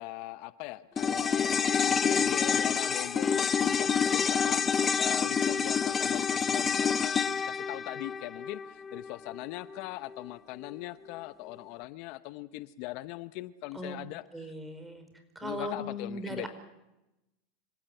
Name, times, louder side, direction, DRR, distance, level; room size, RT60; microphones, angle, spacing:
voice 1, 0.0-4.6 5.0-14.5 15.4-16.5, left 18 dB, 60° left, 14 dB, 0.8 m, -41 dB
sound 1, 1.0-9.4 9.7-9.8, left 6 dB, 25° left, 0.8 m, -28 dB
voice 2, 14.3-15.1 15.3-16.5, left 1 dB, 10° right, 9 dB, 4.6 m, -38 dB
26.0 x 16.0 x 8.9 m, 0.95 s
supercardioid pair, 115°, 0 cm